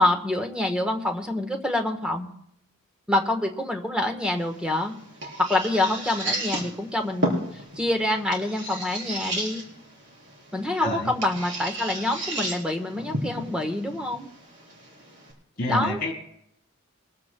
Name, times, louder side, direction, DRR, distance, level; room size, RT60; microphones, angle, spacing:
voice 1, 0.0-2.3 3.1-4.9 5.4-9.6 10.5-14.3 15.7-16.0, left 1 dB, 5° right, 4 dB, 1.2 m, -26 dB
sound 1, 4.3-15.3, right 1 dB, 55° right, 4.1 m, -34 dB
voice 2, 10.8-11.1 15.6-16.1, left 1 dB, 45° left, 1 dB, 3.1 m, -27 dB
22.5 x 14.5 x 2.2 m, 0.75 s
head